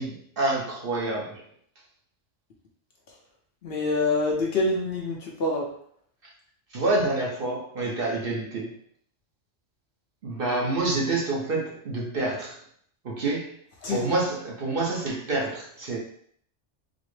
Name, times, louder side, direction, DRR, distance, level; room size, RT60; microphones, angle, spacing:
voice 1, 0.0-1.4 6.7-8.7 10.2-12.6 13.0-13.6 13.9-16.0, right 2 dB, 50° right, -3 dB, 0.9 m, -27 dB
voice 2, 3.6-5.7 13.8-14.1, left 2 dB, 60° left, -1 dB, 0.8 m, -26 dB
4.1 x 2.0 x 3.1 m, 0.62 s
omnidirectional pair, 1.2 m